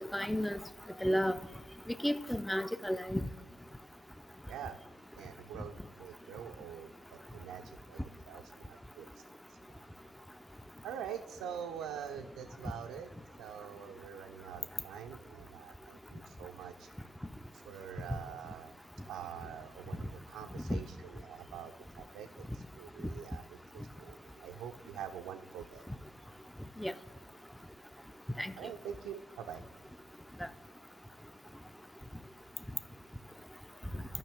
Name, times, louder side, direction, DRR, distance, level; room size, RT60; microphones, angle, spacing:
voice 1, 0.1-0.6 1.0-1.4 2.0-3.2 20.7-20.8 26.8-26.9 28.4-28.5, equal, 5° left, 0.4 m, -32 dB
voice 2, 4.5-4.8 5.1-8.0 8.3-9.2 9.5-9.8 10.8-13.1 13.4-16.9 17.5-18.7 19.1-25.8 28.6-29.7 33.7-34.0, right 8 dB, 80° right, 0.4 m, -45 dB
12.5 x 5.6 x 3.4 m
supercardioid pair, 55°, 0 cm